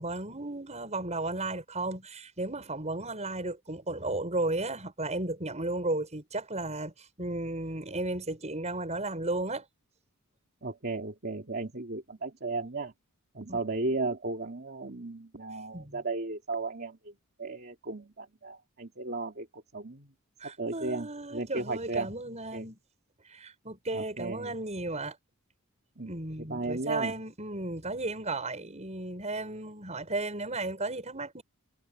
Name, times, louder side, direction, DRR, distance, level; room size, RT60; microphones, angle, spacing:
voice 1, 0.0-9.7 13.5-13.6 15.7-16.0 20.4-22.8 23.3-25.2 26.0-31.4, right 2 dB, 30° right, 7.3 m, -34 dB
voice 2, 10.6-12.9 13.3-17.1 17.4-20.1 20.6-22.1 22.5-22.7 23.9-24.5 26.0-26.1 26.4-27.1, right 3 dB, 50° right, 2.6 m, -35 dB
head